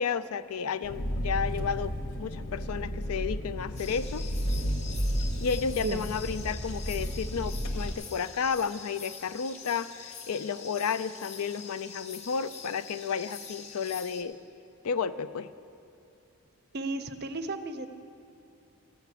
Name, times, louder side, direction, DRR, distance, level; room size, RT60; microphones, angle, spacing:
voice 1, 0.0-4.2 5.4-14.4 14.8-15.5, left 6 dB, 75° left, 14 dB, 0.4 m, -32 dB
Engine, 0.8-7.9, equal, 60° left, 1.0 m, -32 dB
sound 1, 3.8-14.2, left 6 dB, 30° left, 0.6 m, -45 dB
voice 2, 5.7-6.1 16.7-17.9, right 3 dB, 45° right, 9 dB, 0.5 m, -34 dB
14.0 x 5.9 x 8.3 m, 2.7 s
head